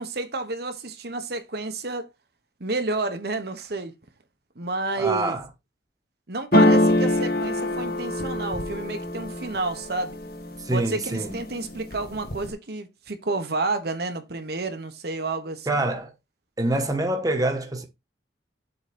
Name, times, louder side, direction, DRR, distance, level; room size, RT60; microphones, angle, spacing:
voice 1, 0.0-2.1 2.6-3.9 4.6-5.4 6.3-10.2 10.7-15.8, right 3 dB, 60° right, 1.2 m, -30 dB
voice 2, 5.0-5.4 10.6-11.4 15.7-16.1 16.6-17.9, right 2 dB, 20° right, 1.2 m, -25 dB
sound 1, 6.5-10.4 10.9-11.4 11.7-12.5, left 1 dB, 55° left, 1.4 m, -23 dB
7.2 x 3.9 x 5.2 m
head